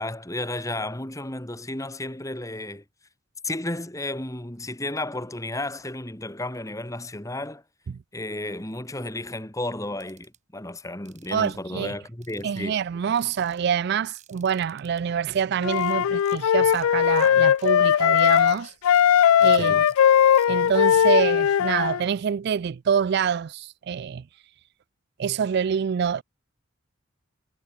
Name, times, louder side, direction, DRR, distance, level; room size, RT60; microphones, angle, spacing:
voice 1, 0.0-2.8 3.4-7.6 8.1-12.8 19.6-19.8, left 1 dB, 15° left, 2.3 m, -33 dB
sound 1, 10.0-10.4 11.1-11.6 12.2-12.8 13.1-13.6 14.1-15.0 15.4-15.5 15.7-16.0 16.3-16.4 16.7-16.9 17.2-17.7 18.2-18.6 18.9-19.0 19.4-19.5 19.9-20.0 20.3-20.5, right 10 dB, 35° right, 5.9 m, -54 dB
voice 2, 11.3-12.0 12.4-18.7 19.4-19.8 20.5-24.2 25.2-26.2, right 7 dB, 50° right, 0.3 m, -26 dB
Wind instrument woodwind instrument, 15.6-18.6 18.8-22.0, left 9 dB, 85° left, 0.3 m, -19 dB
head